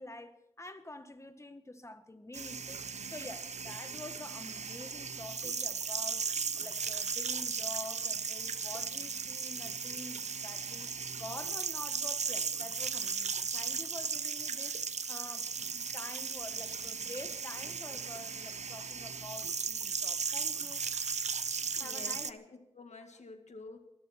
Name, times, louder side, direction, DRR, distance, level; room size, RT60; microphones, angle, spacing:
voice 1, 0.0-6.3 6.6-20.9 21.8-22.3, left 2 dB, 25° left, 1.6 m, -48 dB
sound 1, 2.3-22.3, right 5 dB, 85° right, 0.7 m, -36 dB
voice 2, 21.8-23.8, left 3 dB, 85° left, 1.8 m, -49 dB
25.5 x 12.5 x 4.3 m
wide cardioid pair, 85°, 11 cm